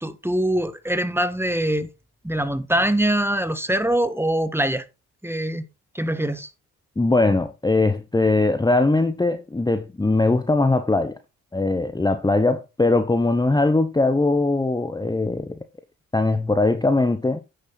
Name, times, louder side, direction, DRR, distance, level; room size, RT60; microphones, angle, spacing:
voice 1, 0.0-1.9 2.2-4.8 5.2-5.6 5.9-6.5, right 1 dB, 5° right, 1.3 m, -23 dB
voice 2, 7.0-11.2 11.5-15.6 16.1-17.4, left 2 dB, 10° left, 0.9 m, -20 dB
9.9 x 6.6 x 4.0 m
hypercardioid pair, 45°, 37 cm